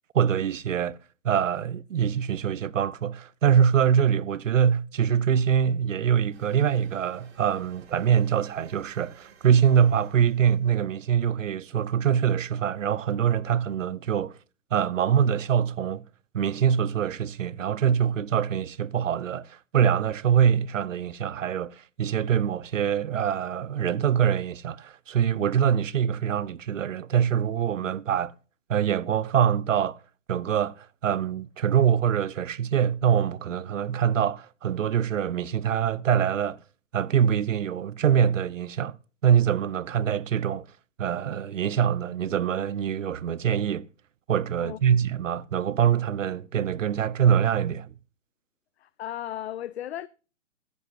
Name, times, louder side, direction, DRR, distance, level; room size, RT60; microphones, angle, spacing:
voice 1, 0.1-1.0 1.2-14.4 14.7-16.0 16.3-28.3 28.7-30.0 30.3-36.6 36.9-38.9 39.2-40.7 41.0-43.9 44.3-47.9, right 8 dB, 75° right, 0.8 m, -24 dB
sound 1, 6.3-11.1, right 6 dB, 50° right, 3.7 m, -55 dB
voice 2, 48.8-50.1, left 11 dB, 55° left, 0.6 m, -35 dB
16.0 x 11.0 x 2.8 m
hypercardioid pair, 145°, 39 cm